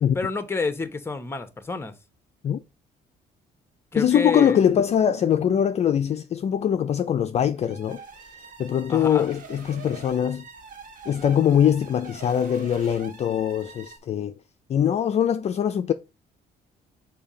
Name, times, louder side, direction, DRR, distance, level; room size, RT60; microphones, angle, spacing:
voice 1, 0.1-1.9 3.9-4.6 8.9-9.3, left 3 dB, 15° left, 0.9 m, -29 dB
voice 2, 3.9-8.0 8.6-10.5 11.1-14.3 14.7-15.9, left 9 dB, 40° left, 0.4 m, -22 dB
sound 1, 7.5-14.0, right 5 dB, 50° right, 1.7 m, -44 dB
6.9 x 2.7 x 5.0 m
cardioid pair, 110°, 17 cm